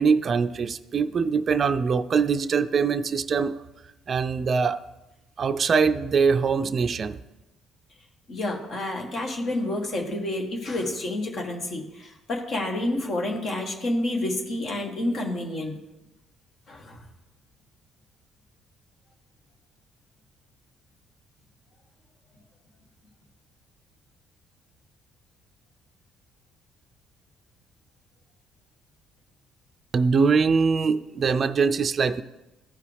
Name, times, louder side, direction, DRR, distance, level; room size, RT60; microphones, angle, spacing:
voice 1, 0.0-3.5 4.1-4.8 5.4-7.2 29.9-32.2, right 5 dB, 45° right, 11 dB, 0.4 m, -23 dB
voice 2, 8.3-15.8 16.7-17.0, left 1 dB, 55° left, 1 dB, 1.5 m, -29 dB
14.0 x 4.7 x 3.4 m, 1.0 s
supercardioid pair, 65°, 0 cm